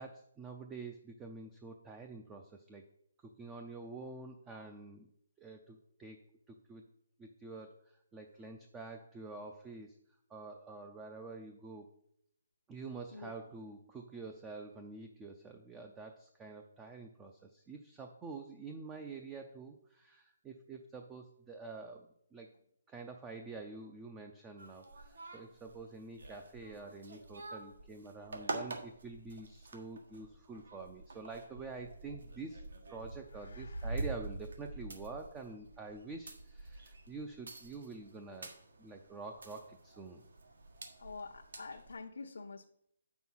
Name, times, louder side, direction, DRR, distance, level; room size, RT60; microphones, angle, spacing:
voice 1, 0.0-2.8 3.2-5.1 5.4-6.2 6.5-6.8 7.2-10.0 10.3-11.9 12.7-22.5 22.9-32.6 32.9-38.5 38.8-40.2, right 3 dB, 10° right, 4 dB, 0.4 m, -47 dB
voice 2, 13.1-13.4 33.3-33.9 41.0-42.6, left 4 dB, 80° left, 1 dB, 0.8 m, -47 dB
sound 1, 24.6-41.9, right 2 dB, 75° right, 1.6 m, -46 dB
8.3 x 6.2 x 5.5 m, 0.73 s
hypercardioid pair, 175°, 0 cm